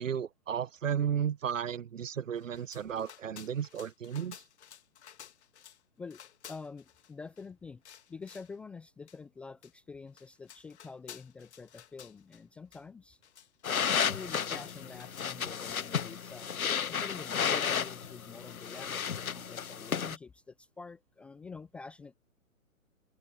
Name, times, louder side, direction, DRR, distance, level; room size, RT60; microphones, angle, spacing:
voice 1, 0.0-4.4, right 8 dB, 65° right, 1.1 m, -34 dB
sound 1, 2.4-5.8 6.1-7.5 7.8-8.6 9.1-9.2 9.6-9.7 10.1-12.4 12.7-12.8 13.1-15.7 16.2-17.0 17.3-17.4, left 9 dB, 55° left, 2.7 m, -54 dB
voice 2, 6.5-7.8 8.1-13.2 13.9-22.2, left 4 dB, 5° left, 0.5 m, -47 dB
sound 2, 13.6-20.2, left 7 dB, 85° left, 0.8 m, -33 dB
figure-of-eight pair, 130°, 41 cm